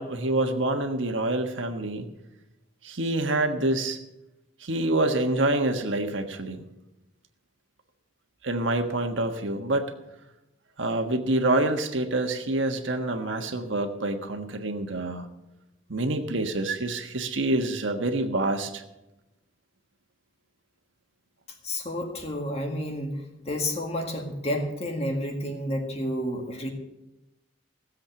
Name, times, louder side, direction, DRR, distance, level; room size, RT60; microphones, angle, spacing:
voice 1, 0.0-2.0 2.8-4.0 4.6-6.6 8.4-9.9 10.8-15.3 15.9-18.8, right 2 dB, 75° right, 5 dB, 1.5 m, -26 dB
voice 2, 21.6-23.2 23.5-26.7, left 1 dB, 35° left, 3 dB, 2.0 m, -30 dB
16.5 x 7.7 x 7.1 m, 0.95 s
head